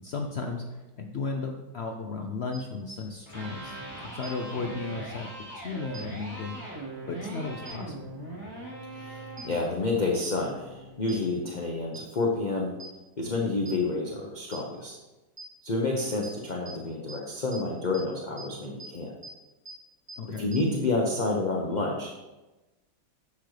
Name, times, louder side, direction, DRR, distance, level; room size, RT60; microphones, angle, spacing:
voice 1, 0.0-6.8 7.1-8.1 20.2-20.5, left 4 dB, 80° left, 3 dB, 0.5 m, -35 dB
sound 1, 2.5-2.6 4.2-4.3 5.9-6.0 7.7-7.8 9.4-9.5 10.2-10.3 11.1-11.2 11.9-12.0 12.8-12.9 13.7-13.8 14.5-14.6 15.4-15.5 16.2-16.3 16.7-16.8 17.1-17.2 17.5-17.6 17.9-18.0 18.4-18.5 18.8-18.9 19.2-19.3 19.7-19.8 20.1-20.2 20.5-20.6, right 4 dB, 35° right, 1.7 m, -42 dB
Electric guitar, 3.1-11.2, right 2 dB, 15° left, 2.7 m, -41 dB
voice 2, 8.9-12.7 13.2-15.0 15.6-19.2 20.4-22.1, left 3 dB, 35° left, -1 dB, 0.7 m, -29 dB
10.0 x 7.2 x 3.3 m, 1.1 s
omnidirectional pair, 2.0 m